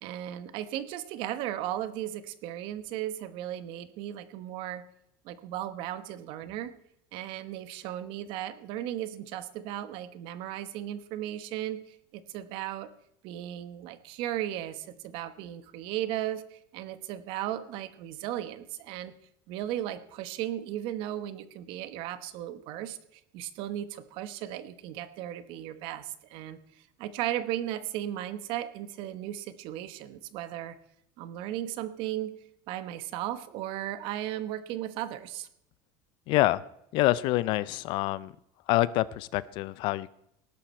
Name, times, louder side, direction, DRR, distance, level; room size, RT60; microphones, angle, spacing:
voice 1, 0.0-4.8 5.2-6.7 7.1-12.9 13.2-19.1 19.5-23.0 23.3-30.8 31.2-32.4 32.7-35.5, right 12 dB, 50° right, 13 dB, 1.1 m, -36 dB
voice 2, 36.3-36.6 36.9-38.3 38.7-40.1, left 17 dB, 45° left, 19 dB, 0.5 m, -26 dB
19.0 x 11.0 x 4.4 m, 0.76 s
cardioid pair, 175°, 11 cm